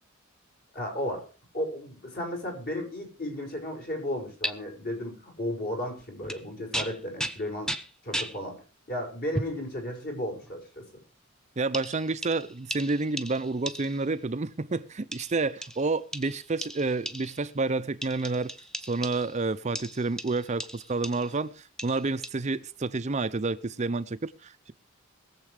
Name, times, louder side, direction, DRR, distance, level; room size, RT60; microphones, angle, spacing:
voice 1, 0.7-1.2 1.5-7.7 8.0-11.0, left 1 dB, 50° left, 5.6 m, -34 dB
sound 1, 4.4-4.5 6.2-6.4 6.7-8.4 9.3-9.6 10.4-10.6 11.7-14.1 15.1-17.5 18.0-19.4 19.8-21.4 21.8-22.3, equal, 5° left, 0.9 m, -36 dB
voice 2, 11.6-18.5 18.9-24.7, right 3 dB, 35° right, 0.6 m, -29 dB
21.0 x 7.5 x 4.9 m
head